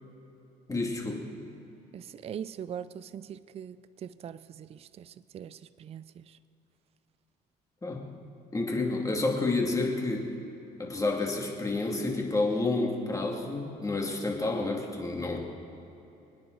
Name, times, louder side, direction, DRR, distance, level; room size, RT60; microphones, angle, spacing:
voice 1, 0.7-1.3 7.8-8.0 8.5-10.3 10.8-15.4, left 2 dB, 20° left, 2.4 m, -29 dB
voice 2, 1.9-6.4, right 8 dB, 35° right, 0.4 m, -42 dB
26.5 x 9.6 x 4.0 m
cardioid pair, 110°, 17 cm